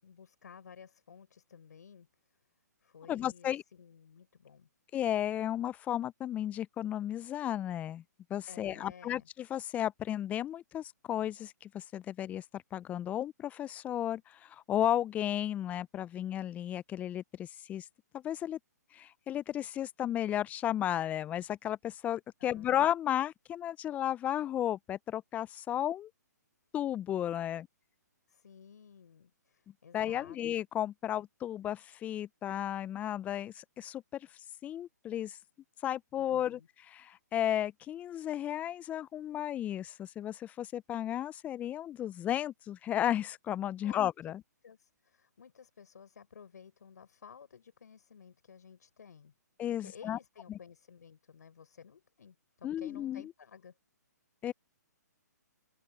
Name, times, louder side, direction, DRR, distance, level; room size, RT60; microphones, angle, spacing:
voice 1, 0.0-2.1 2.8-4.7 8.5-9.3 22.4-22.7 27.5-27.6 28.3-30.4 36.1-36.7 43.8-44.0 44.6-49.3 49.8-53.8, left 7 dB, 70° left, 5.9 m, -54 dB
voice 2, 3.1-3.6 4.9-8.0 8.3-17.8 18.1-18.6 18.9-26.1 26.7-27.7 29.9-34.3 34.6-35.4 35.8-36.6 36.9-44.4 49.6-50.2 52.6-53.2 54.4-54.5, left 11 dB, 15° left, 0.5 m, -34 dB
hypercardioid pair, 135°, 10 cm